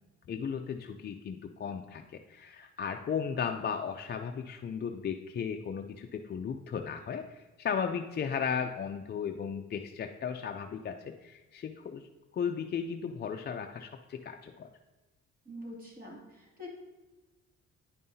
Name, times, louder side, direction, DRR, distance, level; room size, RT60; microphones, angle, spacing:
voice 1, 0.3-12.1 12.3-14.7, left 7 dB, 35° left, 5 dB, 0.4 m, -35 dB
voice 2, 15.5-16.7, left 1 dB, 30° right, -3 dB, 2.4 m, -45 dB
9.5 x 5.4 x 2.7 m, 1.1 s
cardioid pair, 90°, 30 cm